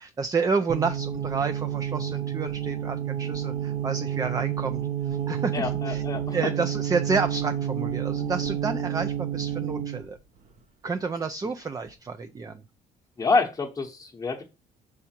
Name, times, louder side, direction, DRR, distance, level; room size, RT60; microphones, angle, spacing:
voice 1, 0.0-6.0 6.3-10.2 10.8-12.6, right 4 dB, 20° right, 10 dB, 0.4 m, -30 dB
sound 1, 0.7-10.1, right 9 dB, 45° right, 0.9 m, -30 dB
voice 2, 5.5-6.4 13.2-14.4, left 4 dB, 20° left, 0 dB, 0.9 m, -27 dB
5.6 x 4.8 x 4.4 m, 0.28 s
cardioid pair, 110°, 17 cm